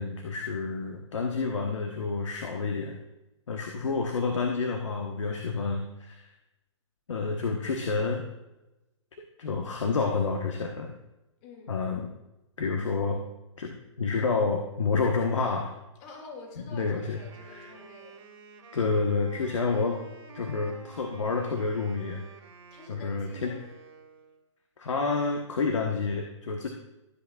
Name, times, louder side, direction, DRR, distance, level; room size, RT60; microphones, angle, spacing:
voice 1, 0.0-3.0 3.5-6.3 7.1-8.2 9.4-11.0 11.7-12.0 12.6-13.2 13.6-15.7 16.7-17.2 17.5-17.7 18.7-20.0 20.3-22.2 22.9-23.5 24.8-26.7, left 4 dB, 70° left, 2 dB, 1.2 m, -29 dB
voice 2, 11.4-11.8 16.0-18.2 22.7-23.6, left 3 dB, 35° left, 1 dB, 2.1 m, -47 dB
Wind instrument woodwind instrument, 16.9-24.5, right 5 dB, 55° right, 2.0 m, -50 dB
13.5 x 8.1 x 2.4 m, 0.97 s
hypercardioid pair, 130°, 16 cm